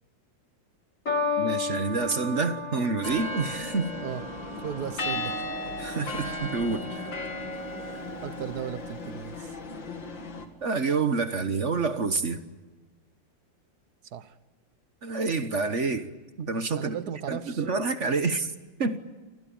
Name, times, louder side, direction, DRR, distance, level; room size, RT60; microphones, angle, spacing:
sound 1, 1.1-7.6 8.4-8.8, left 3 dB, 40° left, 3.5 m, -35 dB
voice 1, 1.4-3.9 5.8-7.1 10.6-12.4 15.0-16.9 17.3-18.5 18.8-19.0, right 4 dB, 40° right, 10 dB, 1.4 m, -28 dB
sound 2, 3.0-10.5, left 1 dB, 75° left, 3.0 m, -35 dB
voice 2, 4.5-5.4 7.8-9.6 14.0-14.4 16.7-17.6, right 9 dB, 60° right, 14 dB, 1.5 m, -36 dB
29.0 x 21.5 x 8.7 m, 1.2 s
omnidirectional pair, 2.1 m